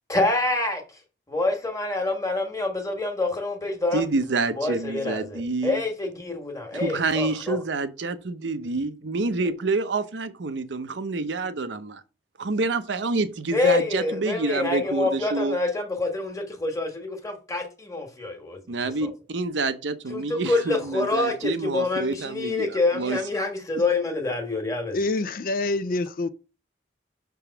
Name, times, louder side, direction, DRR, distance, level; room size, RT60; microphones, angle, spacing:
voice 1, 0.1-0.8 1.3-4.0 4.6-7.6 13.5-19.1 20.1-25.0, left 2 dB, 20° left, 1.4 m, -26 dB
voice 2, 3.9-5.8 6.7-12.0 12.4-15.6 18.7-23.2, right 3 dB, 85° right, 0.7 m, -28 dB
voice 3, 24.9-26.3, left 2 dB, 50° left, 0.4 m, -26 dB
6.0 x 3.5 x 5.6 m
head